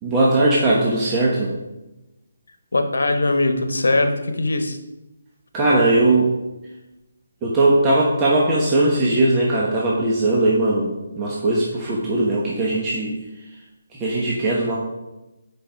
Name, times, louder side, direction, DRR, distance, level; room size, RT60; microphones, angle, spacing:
voice 1, 0.0-1.5 5.5-6.3 7.4-13.2 13.9-14.8, right 2 dB, 15° right, -5 dB, 1.1 m, -19 dB
voice 2, 2.7-4.8, left 2 dB, 85° left, 8 dB, 1.0 m, -20 dB
7.1 x 5.3 x 4.5 m, 1.0 s
hypercardioid pair, 160°, 0 cm